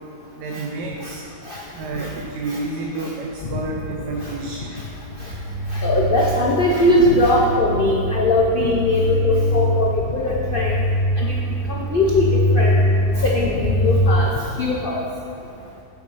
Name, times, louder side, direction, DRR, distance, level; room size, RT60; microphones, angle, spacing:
voice 1, 0.4-1.2 1.7-4.7, right 3 dB, 85° right, 0 dB, 1.3 m, -29 dB
sound 1, 5.1-14.2, equal, 55° right, 2.0 m, -23 dB
voice 2, 5.7-10.8 11.2-11.3 11.7-12.8 13.1-14.3 14.6-15.0, left 1 dB, 85° left, -1 dB, 0.4 m, -20 dB
8.4 x 4.8 x 5.4 m, 2.6 s
omnidirectional pair, 1.8 m